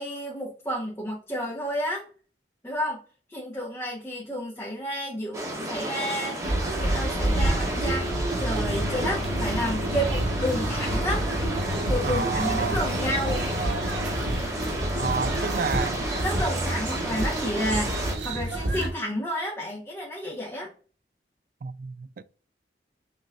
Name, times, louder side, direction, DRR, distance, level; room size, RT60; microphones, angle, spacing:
voice 1, 0.0-2.0 2.6-3.0 3.3-6.4 6.8-11.3 11.9-13.4 14.9-15.0 16.2-20.7, equal, 15° left, 1.1 m, -31 dB
sound 1, 5.3-18.2, right 1 dB, 15° right, 1.3 m, -32 dB
sound 2, 6.4-18.9, right 1 dB, 90° right, 1.2 m, -29 dB
sound 3, 8.6-14.1, left 2 dB, 35° right, 2.5 m, -35 dB
voice 2, 12.0-12.8 15.0-16.0 21.6-22.2, right 5 dB, 50° right, 0.3 m, -30 dB
6.5 x 3.0 x 2.5 m
head